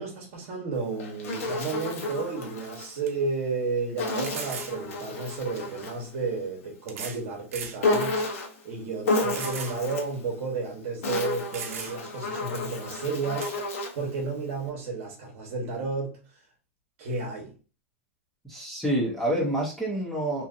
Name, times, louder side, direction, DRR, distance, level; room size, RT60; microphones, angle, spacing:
voice 1, 0.0-8.3 8.6-13.6 13.9-16.2 17.0-17.6, right 4 dB, 50° right, 1.0 m, -32 dB
Insect, 0.7-2.9 4.0-6.1 7.8-8.6 9.0-10.2 10.8-14.1, left 3 dB, 80° left, 0.8 m, -31 dB
sound 1, 2.4-2.5 3.1-3.2 4.2-4.8 5.9-6.0 6.9-7.2 7.5-7.8 8.3-8.4 9.3-9.8 10.1-10.2 11.1-11.2 11.5-12.2 13.4-13.6, right 6 dB, 90° right, 0.6 m, -37 dB
voice 2, 18.4-20.5, right 1 dB, 5° left, 0.8 m, -27 dB
2.7 x 2.5 x 2.5 m
supercardioid pair, 160°, 7 cm